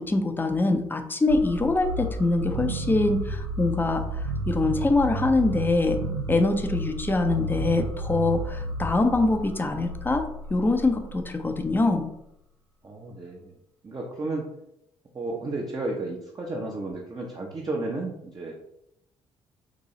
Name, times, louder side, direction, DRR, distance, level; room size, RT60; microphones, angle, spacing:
voice 1, 0.0-6.0 6.3-12.1, left 2 dB, 15° left, 6 dB, 0.5 m, -24 dB
sound 1, 1.3-12.2, right 2 dB, 90° right, 0.4 m, -32 dB
voice 2, 12.8-13.5 13.8-14.5 15.1-18.5, right 2 dB, 30° right, -1 dB, 0.7 m, -32 dB
3.9 x 2.6 x 3.0 m, 0.79 s
figure-of-eight pair, 45°, 15 cm